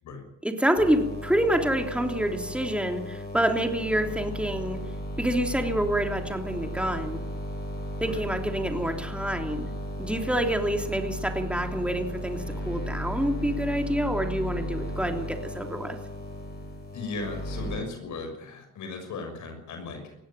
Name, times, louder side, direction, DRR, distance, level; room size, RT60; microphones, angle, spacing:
voice 1, 0.4-4.8 5.2-7.2 8.0-9.7 10.0-16.0, right 1 dB, 5° right, 4 dB, 3.2 m, -27 dB
sound 1, 0.8-17.8, equal, 35° left, 7.7 m, -35 dB
voice 2, 16.9-20.2, left 3 dB, 75° left, 5 dB, 6.4 m, -37 dB
19.5 x 15.5 x 9.0 m, 0.84 s
cardioid pair, 90°, 30 cm